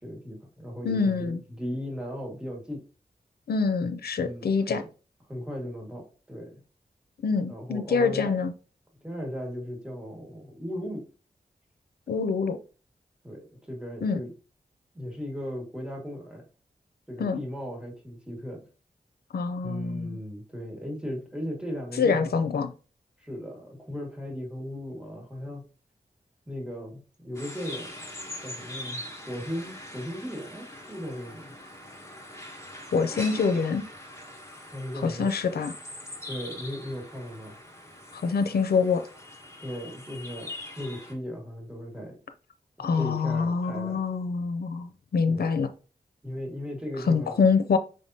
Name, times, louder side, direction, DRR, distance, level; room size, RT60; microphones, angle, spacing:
voice 1, 0.0-2.8 4.2-4.8 5.3-6.6 7.5-8.4 9.0-11.0 13.2-14.3 14.9-16.4 17.1-18.6 19.6-22.3 23.2-25.7 26.5-28.1 28.4-31.5 34.7-35.3 36.3-37.5 39.6-42.2 42.9-44.1 45.3-45.5 46.2-47.4, equal, 5° right, 1.6 m, -37 dB
voice 2, 0.8-1.4 3.5-4.8 7.2-8.5 12.1-12.6 14.0-14.2 17.2-17.4 19.3-20.2 22.0-22.7 32.9-33.8 35.0-35.7 38.1-39.0 42.8-45.7 47.1-47.8, left 5 dB, 85° left, 0.5 m, -25 dB
sound 1, 27.3-41.1, left 1 dB, 15° left, 1.2 m, -42 dB
5.3 x 3.5 x 2.7 m
wide cardioid pair, 60°, 16 cm